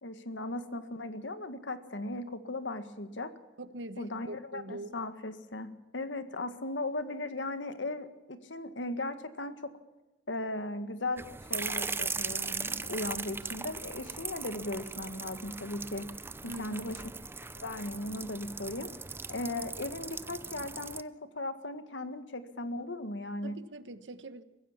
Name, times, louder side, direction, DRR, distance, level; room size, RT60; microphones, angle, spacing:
voice 1, 0.0-3.3 4.0-9.7 10.3-11.2 11.5-16.1 16.4-17.0 17.6-18.9 19.3-23.6, left 2 dB, 90° left, 1.8 m, -37 dB
voice 2, 3.6-4.9 16.5-16.8 23.4-24.4, right 1 dB, 80° right, 1.2 m, -43 dB
sound 1, 11.2-21.0, right 4 dB, 15° right, 0.6 m, -39 dB
23.0 x 15.0 x 7.3 m
head